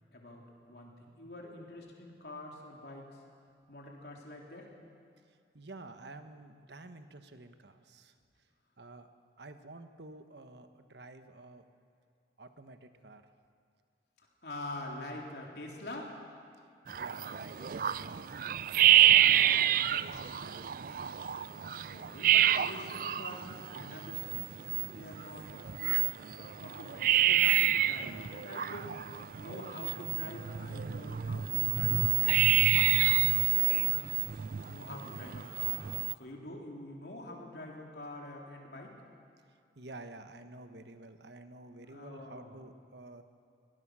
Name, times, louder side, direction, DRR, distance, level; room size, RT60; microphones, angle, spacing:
voice 1, 0.1-3.2 3.7-4.7 14.4-16.1 21.9-26.0 26.4-32.2 32.6-32.9 33.5-33.9 34.3-35.9 36.2-39.0 41.9-42.5, left 1 dB, 60° left, 0 dB, 3.5 m, -46 dB
voice 2, 5.3-8.2 8.8-9.1 9.4-11.6 12.4-13.2 16.9-18.3 19.0-21.0 39.5-43.2, right 2 dB, 65° right, 8 dB, 1.2 m, -50 dB
sound 1, 16.9-36.1, right 12 dB, 50° right, 0.4 m, -28 dB
23.0 x 18.5 x 6.3 m, 2.4 s
head